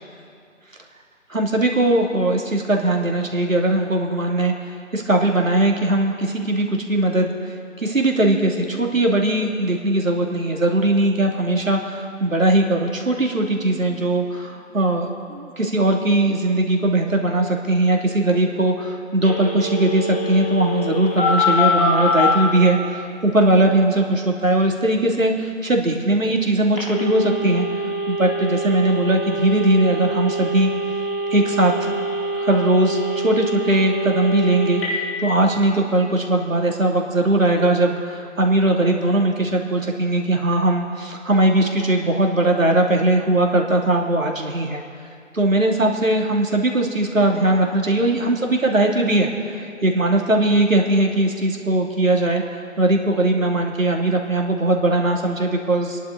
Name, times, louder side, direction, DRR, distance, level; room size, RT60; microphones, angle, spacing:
voice 1, 1.3-30.7 31.3-31.9 32.3-44.8 45.3-52.4 52.8-56.0, right 1 dB, 70° right, 1 dB, 2.7 m, -20 dB
Telephone, 19.2-22.3 26.8-34.9, left 1 dB, 40° left, 4.2 m, -24 dB
29.0 x 11.0 x 4.0 m, 2.4 s
figure-of-eight pair, 175°, 41 cm